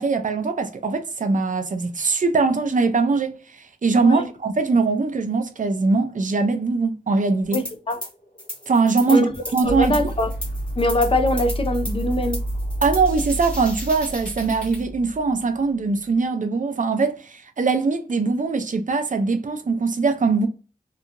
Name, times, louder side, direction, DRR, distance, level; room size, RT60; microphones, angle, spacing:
voice 1, 0.0-3.4 3.8-7.6 8.7-10.0 12.8-20.5, right 4 dB, 55° right, 0.5 m, -21 dB
sound 1, 7.4-15.5, right 1 dB, 70° left, 1.0 m, -30 dB
voice 2, 7.5-8.0 9.1-9.3 9.6-10.3 10.8-12.4, left 1 dB, 35° left, 0.5 m, -22 dB
sound 2, 7.5-8.1 8.4-14.8, left 1 dB, 5° left, 1.0 m, -36 dB
2.8 x 2.4 x 2.5 m
wide cardioid pair, 75°, 15 cm